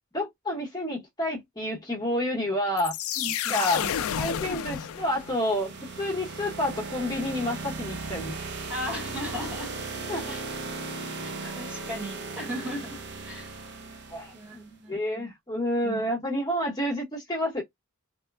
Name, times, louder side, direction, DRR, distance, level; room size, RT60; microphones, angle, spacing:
voice 1, 0.1-2.9 3.5-3.8 4.1-5.7 6.0-8.4 10.1-10.3 11.4-11.6 14.1-14.3 14.9-17.6, left 1 dB, 20° left, 0.9 m, -29 dB
sound 1, 2.8-5.6, left 9 dB, 65° left, 0.4 m, -30 dB
voice 2, 3.2-3.9 8.7-9.7 10.3-10.4 11.6-13.5 14.3-15.3 15.8-16.1, equal, 5° right, 1.0 m, -37 dB
sound 2, 4.8-14.6, right 3 dB, 50° right, 0.6 m, -37 dB
3.0 x 2.1 x 2.3 m
head